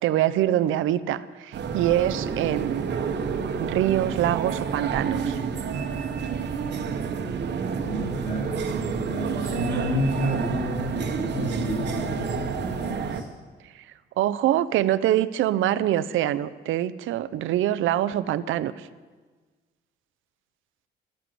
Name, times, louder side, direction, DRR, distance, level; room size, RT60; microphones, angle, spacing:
voice 1, 0.0-2.9 3.6-5.4 13.7-13.8 14.2-18.9, right 12 dB, 85° right, 15 dB, 0.6 m, -24 dB
sound 1, 1.5-13.2, right 6 dB, 60° right, 1.2 m, -29 dB
voice 2, 7.8-13.2, left 1 dB, 85° left, -8 dB, 4.7 m, -30 dB
13.0 x 11.5 x 7.7 m, 1.4 s
cardioid pair, 90°, 20 cm